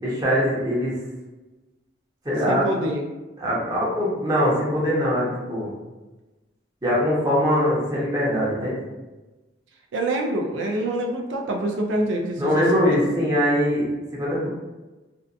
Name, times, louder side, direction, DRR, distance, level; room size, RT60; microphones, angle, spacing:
voice 1, 0.0-0.9 2.2-2.7 3.4-5.8 6.8-8.8 12.4-14.5, equal, 20° right, -6 dB, 0.7 m, -22 dB
voice 2, 2.5-3.0 9.9-12.8, right 1 dB, 85° right, 1 dB, 0.4 m, -26 dB
2.6 x 2.1 x 2.4 m, 1.1 s
head